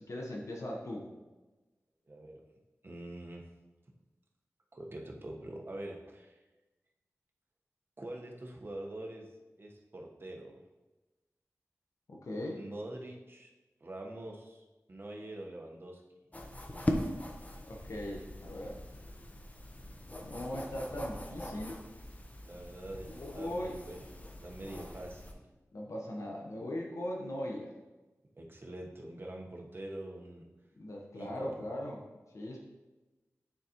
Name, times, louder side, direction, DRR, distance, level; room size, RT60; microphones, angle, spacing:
voice 1, 0.1-1.1 12.1-12.6 17.6-18.8 20.2-21.8 23.1-23.8 25.7-27.7 30.8-32.0 32.3-32.6, left 1 dB, 70° left, -1 dB, 1.0 m, -39 dB
voice 2, 2.1-2.4 2.8-3.5 4.7-6.4 8.0-9.3 9.6-10.6 12.5-13.5 13.8-16.0 22.4-23.1 23.3-24.0 24.4-25.4 28.3-30.5 31.2-31.6, right 1 dB, 45° right, 0 dB, 1.1 m, -44 dB
sound 1, 16.3-25.3, left 1 dB, 30° left, 0.8 m, -41 dB
9.5 x 4.0 x 3.0 m, 1.1 s
cardioid pair, 55°, 5 cm